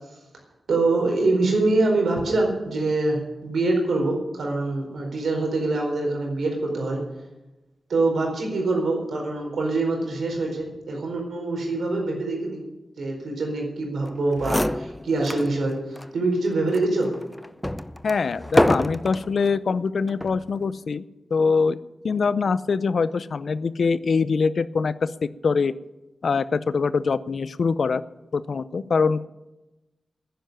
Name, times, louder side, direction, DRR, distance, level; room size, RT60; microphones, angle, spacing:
voice 1, 0.7-7.0 7.9-12.6 13.0-17.1, right 2 dB, 85° right, 1 dB, 4.5 m, -24 dB
sound 1, 14.1-14.2 14.4-15.5 16.0-16.1 16.7-19.3 20.1-20.4, left 1 dB, 10° left, 0.6 m, -25 dB
voice 2, 18.0-21.0 21.3-21.8 22.0-25.7 26.2-28.0 28.3-29.3, left 5 dB, 70° left, 16 dB, 0.6 m, -23 dB
10.5 x 10.5 x 9.3 m, 1.0 s
cardioid pair, 50°, 0 cm